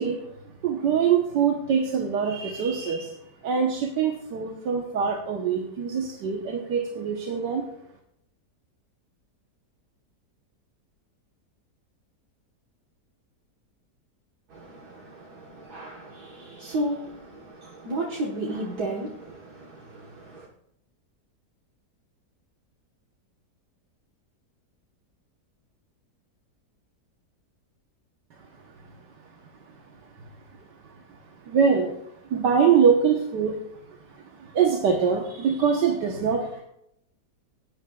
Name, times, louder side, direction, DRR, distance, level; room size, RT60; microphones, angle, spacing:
voice 1, 0.0-7.6 28.3-36.6, right 6 dB, 90° right, 1.7 m, -25 dB
voice 2, 14.5-20.5, right 1 dB, 65° right, 1.9 m, -34 dB
18.0 x 9.7 x 2.4 m
omnidirectional pair, 1.8 m